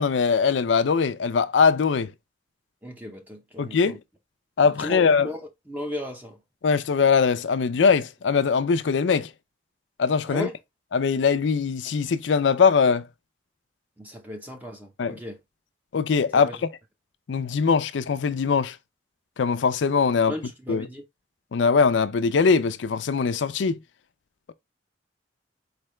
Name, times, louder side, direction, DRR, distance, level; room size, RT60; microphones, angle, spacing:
voice 1, 0.0-2.1 3.6-4.0 4.6-5.3 6.6-9.3 10.0-10.5 10.9-13.1 15.0-15.1 15.9-16.5 17.3-18.8 19.4-20.3 20.7-20.9 21.5-23.8, left 5 dB, 85° left, 0.4 m, -21 dB
voice 2, 2.8-4.0 4.6-6.4 10.3-10.6 14.0-15.4 16.3-16.6 20.1-21.0, left 1 dB, 10° right, 0.6 m, -36 dB
4.5 x 3.3 x 3.1 m
head